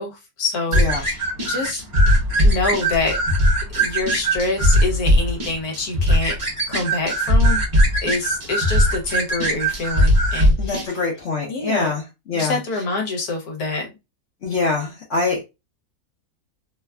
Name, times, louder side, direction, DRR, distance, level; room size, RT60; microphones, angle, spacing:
voice 1, 0.0-1.8 2.4-3.2 3.7-6.4 6.7-7.6 8.0-10.9 11.5-11.9 12.3-13.9, left 3 dB, 80° left, 1.5 m, -26 dB
voice 2, 0.7-1.0 10.6-12.6 14.4-15.4, left 3 dB, 55° left, 1.0 m, -24 dB
sound 1, 0.7-10.9, equal, 25° right, 0.8 m, -19 dB
3.1 x 2.3 x 2.3 m
omnidirectional pair, 1.6 m